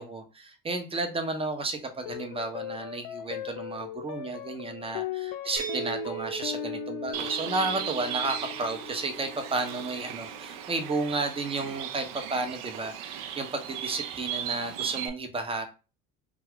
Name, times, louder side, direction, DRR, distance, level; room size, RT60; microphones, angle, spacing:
voice 1, 0.0-15.7, right 3 dB, 15° right, 0.5 m, -32 dB
sound 1, 2.0-10.7, left 12 dB, 55° left, 0.5 m, -39 dB
sound 2, 5.6-11.3, right 11 dB, 45° right, 0.8 m, -42 dB
Bird, 7.1-15.1, right 9 dB, 75° right, 0.5 m, -37 dB
2.3 x 2.3 x 3.5 m
hypercardioid pair, 80°, 42 cm